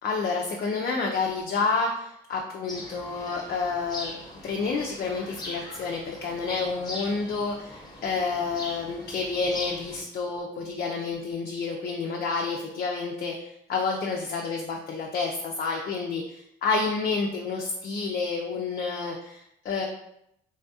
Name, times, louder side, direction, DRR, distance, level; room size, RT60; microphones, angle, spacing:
voice 1, 0.0-4.1 4.4-19.8, left 4 dB, 50° left, 0 dB, 0.4 m, -29 dB
sound 1, 2.7-10.0, left 1 dB, 20° left, 0.9 m, -41 dB
3.4 x 2.2 x 2.7 m, 0.76 s
cardioid pair, 90°, 20 cm